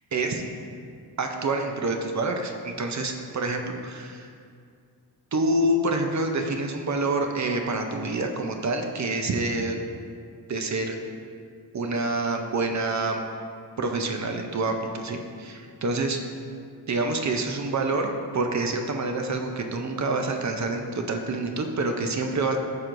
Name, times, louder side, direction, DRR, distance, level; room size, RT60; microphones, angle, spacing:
voice 1, 0.1-0.4 1.2-4.3 5.3-9.8 10.5-11.0 11.7-13.2 13.8-16.2 16.9-22.6, right 2 dB, 40° right, 4 dB, 0.5 m, -27 dB
12.0 x 4.6 x 2.5 m, 2.2 s
wide cardioid pair, 150°, 42 cm